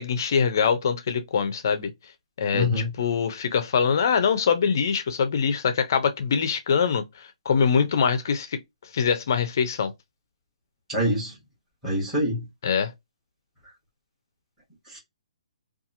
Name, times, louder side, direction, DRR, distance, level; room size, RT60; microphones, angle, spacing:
voice 1, 0.0-1.9 2.4-8.6 8.9-9.9 12.6-12.9, left 6 dB, 30° left, 0.4 m, -23 dB
voice 2, 2.5-2.9 10.9-11.3 11.8-12.4 14.9-15.0, left 1 dB, 5° right, 0.9 m, -25 dB
2.8 x 2.3 x 2.5 m
hypercardioid pair, 180°, 4 cm